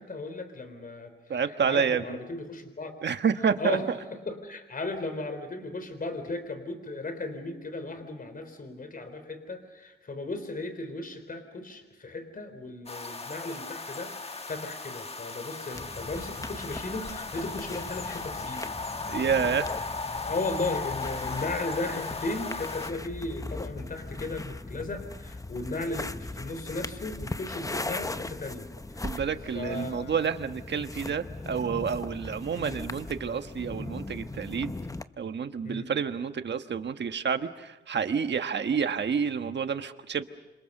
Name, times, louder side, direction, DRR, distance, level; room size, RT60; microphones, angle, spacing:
voice 1, 0.0-1.1 1.5-2.9 3.6-3.9 4.3-18.7 20.2-29.2 29.5-30.1 35.6-35.9, left 2 dB, 50° left, 9 dB, 3.9 m, -36 dB
voice 2, 1.3-2.2 3.0-4.0 19.1-19.7 29.0-34.7 35.2-40.2, right 6 dB, 70° right, 8 dB, 1.4 m, -29 dB
sound 1, 12.9-22.9, left 4 dB, 35° left, 1.4 m, -36 dB
sound 2, 15.7-35.0, left 2 dB, 20° left, 0.9 m, -39 dB
27.5 x 26.5 x 6.7 m, 1.1 s
wide cardioid pair, 90°, 19 cm